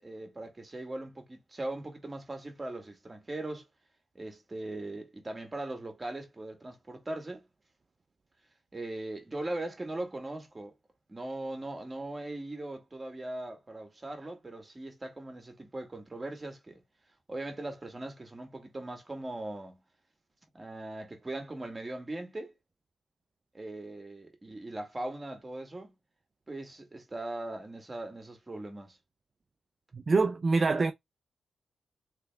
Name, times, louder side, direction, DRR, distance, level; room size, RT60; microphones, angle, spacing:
voice 1, 0.0-3.7 4.2-7.5 8.7-10.7 11.1-16.8 17.3-19.8 20.5-22.5 23.5-25.9 26.5-29.0, right 2 dB, 30° right, 1.9 m, -40 dB
voice 2, 29.9-30.9, right 4 dB, 45° right, 0.5 m, -25 dB
3.4 x 3.3 x 3.5 m
cardioid pair, 55°, 0 cm